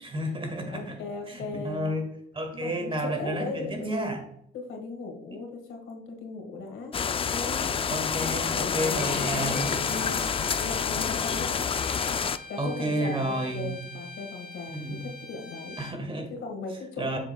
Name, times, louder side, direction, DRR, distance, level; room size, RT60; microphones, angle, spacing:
voice 1, 0.0-1.0 1.3-2.0 2.3-4.2 7.9-9.8 12.6-13.9 14.7-15.1 15.8-16.3 17.0-17.2, right 1 dB, 25° right, 5 dB, 1.8 m, -31 dB
voice 2, 0.7-1.9 2.5-4.2 4.5-6.9 7.3-7.7 8.5-10.3 10.5-11.6 12.5-15.8 16.3-17.2, left 3 dB, 75° left, 3 dB, 1.7 m, -38 dB
sound 1, 6.9-12.4, left 6 dB, 30° left, 0.3 m, -28 dB
Bowed string instrument, 9.0-15.9, left 3 dB, 45° left, 0.8 m, -42 dB
7.2 x 6.5 x 2.2 m, 0.71 s
cardioid pair, 90°, 20 cm